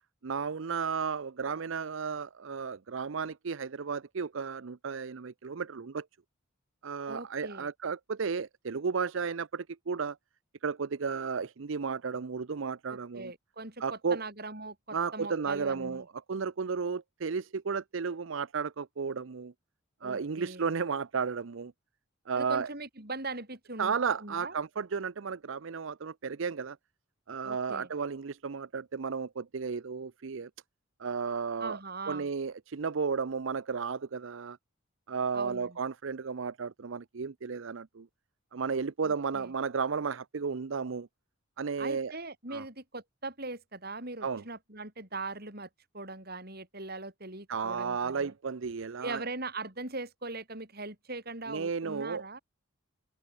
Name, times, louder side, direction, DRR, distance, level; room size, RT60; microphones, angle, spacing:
voice 1, 0.2-6.1 6.8-10.2 10.6-13.3 13.8-14.2 14.9-19.5 20.0-21.7 22.3-22.7 23.8-26.8 27.3-30.5 31.0-31.8 32.1-34.6 35.1-38.1 38.5-41.1 41.6-42.1 42.5-42.6 44.2-44.4 47.5-49.2 51.5-52.4, right 5 dB, 65° right, 0.6 m, -33 dB
voice 2, 7.1-7.7 12.9-16.0 20.0-20.7 22.3-23.9 24.2-24.5 27.4-27.9 31.6-32.3 35.3-35.8 39.0-39.5 41.8-45.7 45.9-48.3 49.0-52.4, right 3 dB, 45° right, 7.8 m, -40 dB
head